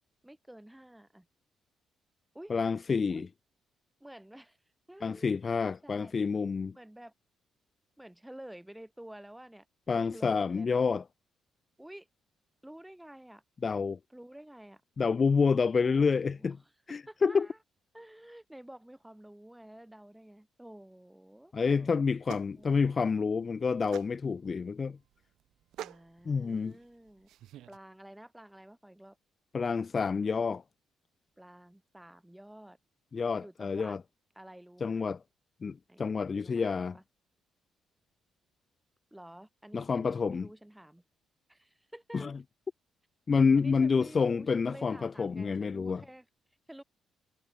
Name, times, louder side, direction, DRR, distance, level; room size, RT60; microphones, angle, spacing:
voice 1, 0.2-1.3 2.3-2.5 3.1-3.3 4.0-4.6 4.9-5.3 5.7-6.2 6.7-7.1 8.0-10.8 11.8-12.1 12.6-13.4 14.1-14.8 15.8-17.6 17.9-22.0 25.8-27.3 27.7-29.2 31.4-32.8 33.4-34.0 34.4-35.1 35.9-37.0 39.1-41.0 41.5-42.3 43.6-46.3 46.7-46.8, right 1 dB, 5° right, 3.4 m, -51 dB
voice 2, 2.5-3.3 5.0-6.7 9.9-11.0 13.6-14.0 15.0-16.6 16.9-17.5 21.5-25.0 26.3-26.7 29.5-30.6 33.1-34.0 34.8-35.2 35.6-37.0 39.7-40.5 42.1-42.3 43.3-46.0, left 5 dB, 40° left, 0.7 m, -28 dB
sound 1, 21.7-27.8, right 13 dB, 80° right, 0.9 m, -50 dB
cardioid pair, 90°, 0 cm